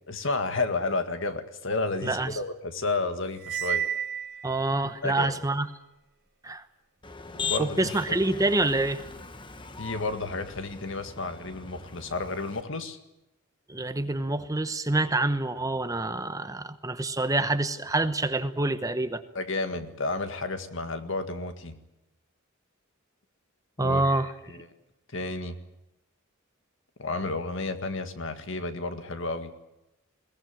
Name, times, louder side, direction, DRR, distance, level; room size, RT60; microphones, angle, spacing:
voice 1, 0.1-3.9 5.0-5.3 7.3-8.0 9.8-13.0 19.3-21.8 23.8-24.2 24.5-24.6 25.1-25.6 27.0-29.5, left 3 dB, 60° left, 8 dB, 1.9 m, -31 dB
Cymbal, 3.4-4.8, right 8 dB, 50° right, 0.8 m, -31 dB
voice 2, 4.4-5.7 6.4-6.6 7.6-9.0 13.7-19.2 23.8-24.3, right 2 dB, 15° right, 10 dB, 0.9 m, -26 dB
Motor vehicle (road), 7.0-12.6, left 5 dB, 25° left, 1.2 m, -39 dB
22.0 x 18.0 x 8.9 m, 0.92 s
head